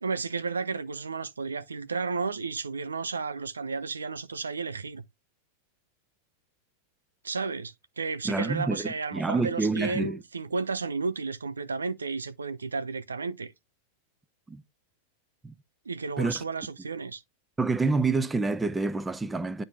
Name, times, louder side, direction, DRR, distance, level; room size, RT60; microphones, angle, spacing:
voice 1, 0.0-5.0 7.2-13.5 15.9-17.2, right 4 dB, 75° right, 0.6 m, -32 dB
voice 2, 8.2-10.2 14.5-14.6 15.4-15.5 16.2-16.4 17.6-19.6, right 3 dB, 10° right, 0.6 m, -27 dB
9.8 x 4.0 x 3.5 m
figure-of-eight pair, 90°, 0 cm